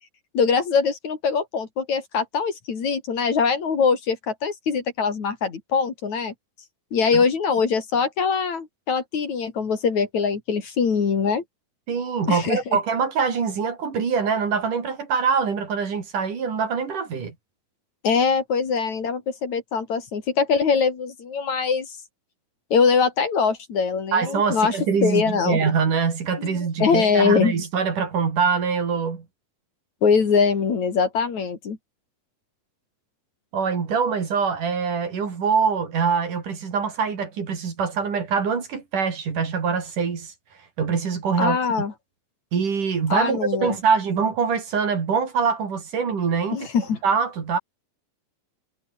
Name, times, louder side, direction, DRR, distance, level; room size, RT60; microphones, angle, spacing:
voice 1, 0.3-6.3 6.9-11.4 12.3-12.8 18.0-22.0 22.7-25.6 26.4-27.5 30.0-31.8 41.4-41.9 43.1-43.8 46.5-47.0, left 5 dB, 55° left, 4.3 m, -22 dB
voice 2, 11.9-17.3 24.1-29.2 33.5-40.3 40.8-41.6 42.5-46.6 47.0-47.6, right 6 dB, 60° right, 5.1 m, -24 dB
omnidirectional pair, 4.1 m